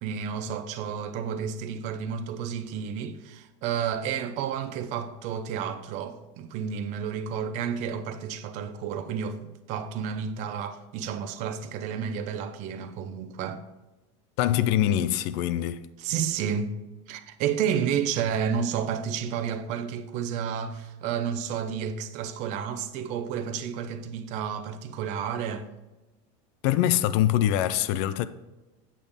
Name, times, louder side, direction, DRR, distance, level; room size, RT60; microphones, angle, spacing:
voice 1, 0.0-13.6 16.0-16.8 17.1-25.7, right 7 dB, 45° right, 0.7 m, -31 dB
voice 2, 14.4-15.9 26.6-28.3, left 12 dB, 55° left, 0.5 m, -24 dB
8.4 x 7.1 x 3.6 m
supercardioid pair, 160°, 17 cm